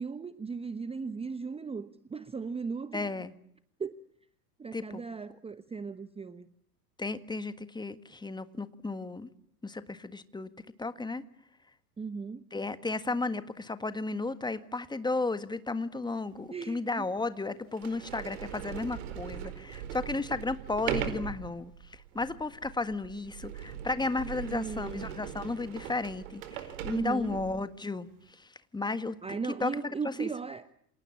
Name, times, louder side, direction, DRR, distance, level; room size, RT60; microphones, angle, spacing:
voice 1, 0.0-3.1 3.8-4.0 4.6-6.5 12.0-12.4 16.5-17.0 24.4-25.1 26.9-27.4 29.2-30.7, right 5 dB, 10° right, 12 dB, 1.1 m, -37 dB
voice 2, 2.9-3.3 4.7-5.0 7.0-9.3 9.6-10.5 10.8-11.2 12.5-29.8 30.0-30.3, left 3 dB, 10° left, 12 dB, 1.6 m, -34 dB
Sliding door, 16.3-16.4 17.2-17.3 17.7-27.7, right 10 dB, 60° right, 4.6 m, -40 dB
28.5 x 27.0 x 7.4 m, 0.68 s
hypercardioid pair, 90°, 48 cm